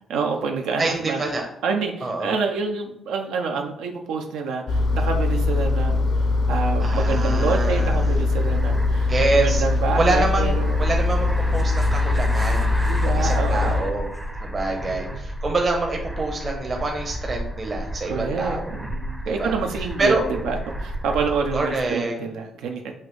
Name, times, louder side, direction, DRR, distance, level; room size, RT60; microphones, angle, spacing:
voice 1, 0.1-1.2 1.6-6.1 6.5-9.1 9.4-10.9 12.8-14.0 14.8-15.2 18.1-22.9, right 4 dB, 85° right, 3 dB, 0.5 m, -27 dB
voice 2, 0.8-1.4 2.0-2.3 6.8-8.2 9.1-9.6 10.0-12.8 13.1-14.1 14.4-18.8 19.2-19.6 20.0-20.2 21.5-22.2, right 2 dB, 35° right, 1 dB, 0.8 m, -26 dB
Engine, 4.7-13.8, left 3 dB, 60° left, 0.5 m, -22 dB
sound 1, 7.5-21.9, equal, 5° right, 0.5 m, -32 dB
5.7 x 2.6 x 3.3 m, 0.77 s
cardioid pair, 90°, 0 cm